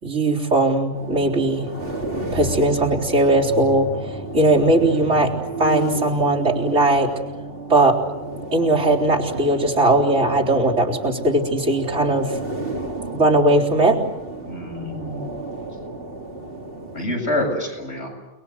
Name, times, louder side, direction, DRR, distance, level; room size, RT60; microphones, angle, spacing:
voice 1, 0.0-1.7 2.3-5.3 5.6-7.1 7.7-8.0 8.5-12.4 13.1-14.0, right 2 dB, 90° right, -3 dB, 4.3 m, -19 dB
sound 1, 0.9-17.1, right 2 dB, 50° right, 3.5 m, -32 dB
voice 2, 14.4-15.4 16.9-18.1, left 1 dB, 65° left, 1 dB, 8.0 m, -27 dB
29.5 x 21.0 x 8.0 m, 1.1 s
omnidirectional pair, 1.2 m